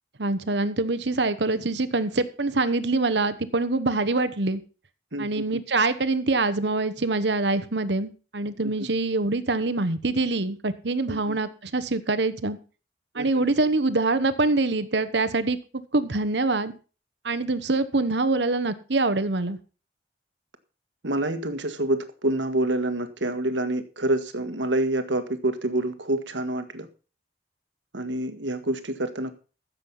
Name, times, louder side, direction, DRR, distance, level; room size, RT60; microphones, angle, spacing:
voice 1, 0.2-4.6 5.2-12.6 13.1-16.7 17.2-19.6, right 3 dB, 75° right, 12 dB, 1.1 m, -25 dB
voice 2, 5.1-5.4 8.6-8.7 11.1-11.4 13.1-13.4 21.0-26.9 27.9-29.3, right 1 dB, 90° right, 9 dB, 1.6 m, -27 dB
15.0 x 7.6 x 5.6 m, 0.36 s
head